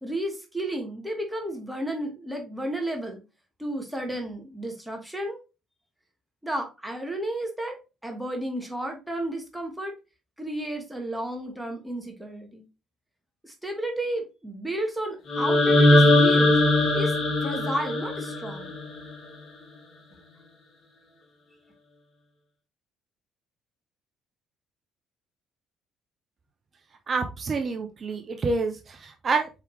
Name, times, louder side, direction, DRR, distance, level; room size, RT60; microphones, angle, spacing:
voice 1, 0.0-3.2 3.6-5.4 6.4-7.8 8.0-9.9 10.4-12.6 13.4-16.6 16.9-17.1 17.4-18.7, right 1 dB, 5° right, 2 dB, 1.2 m, -32 dB
sound 1, 15.3-19.3, left 1 dB, 50° left, 1.4 m, -21 dB
voice 2, 27.1-29.5, right 4 dB, 40° right, 5 dB, 0.6 m, -28 dB
4.7 x 3.3 x 3.0 m, 0.28 s
hypercardioid pair, 50°, 0 cm